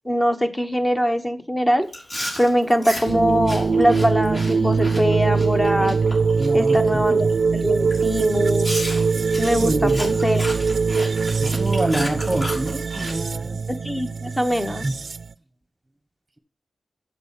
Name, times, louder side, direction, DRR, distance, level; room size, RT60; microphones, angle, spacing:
voice 1, 0.0-1.9 2.4-6.0 6.5-7.3 7.5-8.7 9.4-10.4 13.8-14.8, equal, 15° left, 7 dB, 1.2 m, -22 dB
Chewing mastication, 1.9-6.8 7.1-7.4 7.9-8.0 8.6-13.1, equal, 35° left, 3.4 m, -33 dB
sound 1, 3.0-15.3, right 5 dB, 65° right, 0.4 m, -22 dB
voice 2, 6.4-7.3 9.6-10.0 11.4-13.6 14.8-14.9, right 1 dB, 15° right, 8 dB, 1.3 m, -26 dB
8.0 x 7.4 x 5.7 m, 0.37 s
wide cardioid pair, 105°, 0 cm